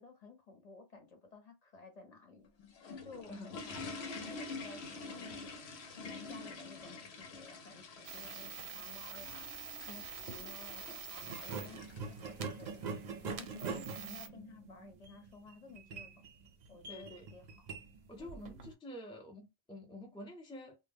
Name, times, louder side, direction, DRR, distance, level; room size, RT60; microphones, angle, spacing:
voice 1, 0.0-2.5 3.0-5.7 6.0-9.5 9.8-12.9 13.4-16.3 16.7-17.7 18.2-18.4, left 4 dB, 45° left, 0.7 m, -55 dB
sound 1, 2.4-12.8, left 3 dB, 90° left, 0.9 m, -47 dB
sound 2, 8.1-14.3, right 6 dB, 85° right, 0.8 m, -47 dB
sound 3, 10.2-10.4 11.2-18.7, right 4 dB, 55° right, 0.5 m, -44 dB
voice 2, 13.2-13.9 16.9-17.3 18.1-20.9, left 1 dB, 10° left, 0.3 m, -49 dB
2.1 x 2.0 x 3.4 m
omnidirectional pair, 1.1 m